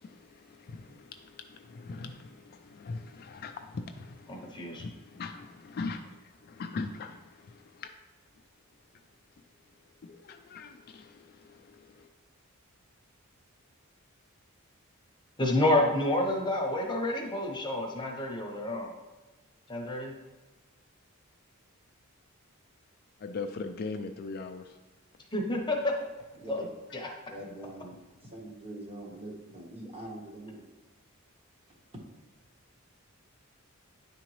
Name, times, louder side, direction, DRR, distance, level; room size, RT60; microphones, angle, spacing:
voice 1, 0.0-7.9 10.0-12.1 23.2-24.7, left 4 dB, 45° left, 6 dB, 0.3 m, -41 dB
voice 2, 4.3-4.8 15.4-18.9 19.7-20.1 25.3-25.9 26.5-26.6 26.9-27.1, left 1 dB, 20° left, 1 dB, 0.8 m, -29 dB
voice 3, 26.4-26.7 27.3-28.0 28.2-30.7 31.7-31.8, right 1 dB, 30° right, -1 dB, 1.1 m, -43 dB
9.3 x 3.8 x 3.1 m, 1.2 s
head